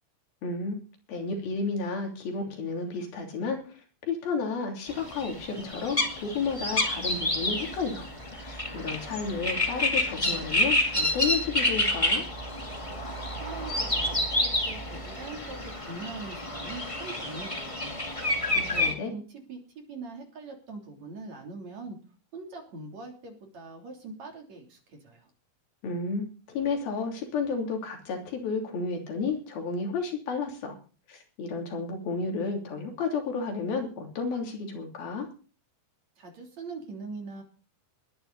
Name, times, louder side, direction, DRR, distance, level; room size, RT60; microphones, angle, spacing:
voice 1, 0.4-0.8 1.1-8.0 8.3-12.2 18.5-19.1 25.8-30.8 31.1-35.3, left 4 dB, 70° left, 3 dB, 4.8 m, -32 dB
sound 1, 4.9-18.9, left 1 dB, 30° left, 0.6 m, -29 dB
voice 2, 13.4-17.9 18.5-22.0 22.3-25.3 36.2-37.4, right 3 dB, 45° right, 2 dB, 4.2 m, -42 dB
20.5 x 10.0 x 4.1 m, 0.36 s
omnidirectional pair, 4.4 m